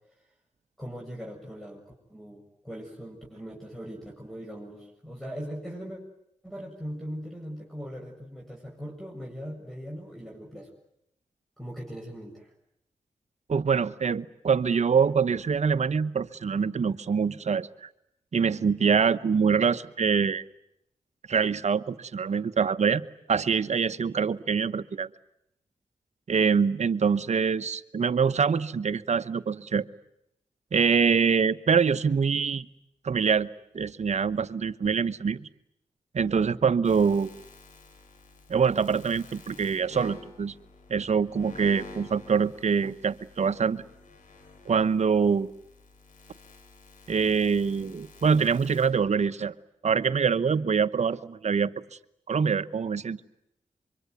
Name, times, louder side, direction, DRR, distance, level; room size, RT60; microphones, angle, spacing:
voice 1, 0.8-6.0 6.4-10.7 11.6-12.5, equal, ahead, -2 dB, 7.3 m, -40 dB
voice 2, 13.5-17.9 18.3-20.4 21.3-23.0 23.3-25.1 26.3-29.8 30.7-32.7 33.0-33.5 33.7-35.5 36.1-37.3 38.5-40.5 40.9-43.8 44.7-45.5 47.1-49.5 49.8-51.7 52.3-53.2, right 6 dB, 60° right, 14 dB, 1.1 m, -24 dB
sound 1, 36.8-48.9, left 3 dB, 85° left, 6.0 m, -50 dB
25.0 x 24.0 x 9.5 m, 0.77 s
cardioid pair, 40°, 13 cm